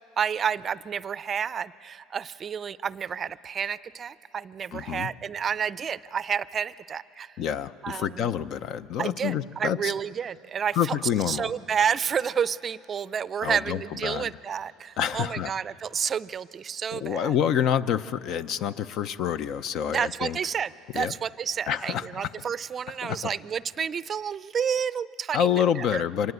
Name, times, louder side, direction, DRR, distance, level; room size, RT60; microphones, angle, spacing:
voice 1, 0.2-7.4 7.8-8.3 9.0-11.0 11.3-17.4 19.9-26.0, right 7 dB, 35° right, 18 dB, 0.4 m, -30 dB
voice 2, 4.7-5.1 7.4-9.9 10.8-11.5 13.4-14.3 15.0-15.5 16.9-20.4 20.9-21.1 21.7-22.1 23.0-23.2 25.3-26.3, left 9 dB, 55° left, 14 dB, 0.6 m, -27 dB
25.5 x 19.0 x 8.1 m, 2.6 s
supercardioid pair, 100°, 0 cm